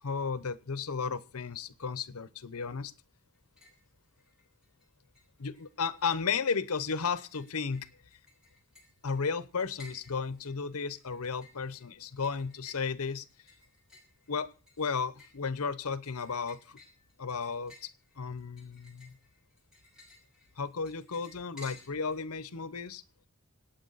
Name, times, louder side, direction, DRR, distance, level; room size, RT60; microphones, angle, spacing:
voice 1, 0.0-2.9 5.4-7.9 9.0-13.2 14.3-14.5 14.8-16.8 17.2-19.1 20.6-23.0, left 5 dB, 85° left, 16 dB, 0.9 m, -34 dB
sound 1, 3.3-3.9 4.2-4.9 5.1-22.2, left 3 dB, 5° right, 5.8 m, -57 dB
26.0 x 9.1 x 4.0 m, 0.35 s
head